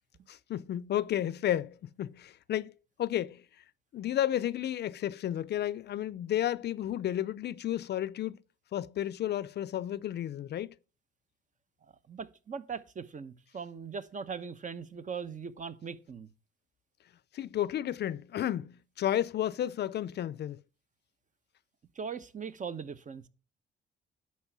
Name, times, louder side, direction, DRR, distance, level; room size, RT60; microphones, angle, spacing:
voice 1, 0.3-2.7 3.0-3.5 3.9-8.4 8.7-10.8 17.3-20.6, left 11 dB, 60° left, 0.5 m, -32 dB
voice 2, 12.1-16.3 21.9-23.3, right 6 dB, 40° right, 1.0 m, -40 dB
11.0 x 4.4 x 6.1 m
cardioid pair, 90°, 20 cm